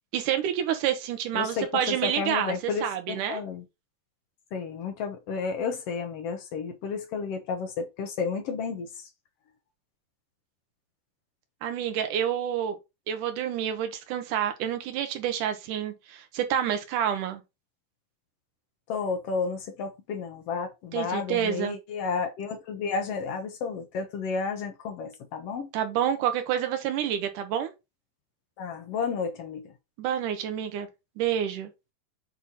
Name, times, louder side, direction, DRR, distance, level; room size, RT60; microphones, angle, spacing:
voice 1, 0.1-3.4 11.6-12.8 13.1-17.4 20.9-21.8 25.7-27.7 30.0-30.9 31.2-31.7, right 9 dB, 70° right, 2.4 m, -28 dB
voice 2, 1.3-3.6 4.5-9.1 18.9-25.7 28.6-29.7, left 5 dB, 75° left, 1.4 m, -32 dB
8.3 x 3.0 x 4.2 m
omnidirectional pair, 4.0 m